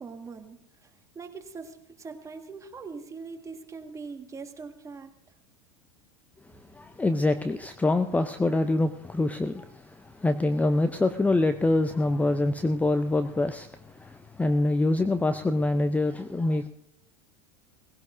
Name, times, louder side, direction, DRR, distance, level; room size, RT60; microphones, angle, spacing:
voice 1, 0.0-5.1, right 4 dB, 20° right, 5 dB, 1.8 m, -42 dB
voice 2, 6.7-16.7, left 2 dB, 10° left, 9 dB, 0.7 m, -25 dB
19.0 x 16.5 x 2.7 m, 0.81 s
hypercardioid pair, 85°, 15 cm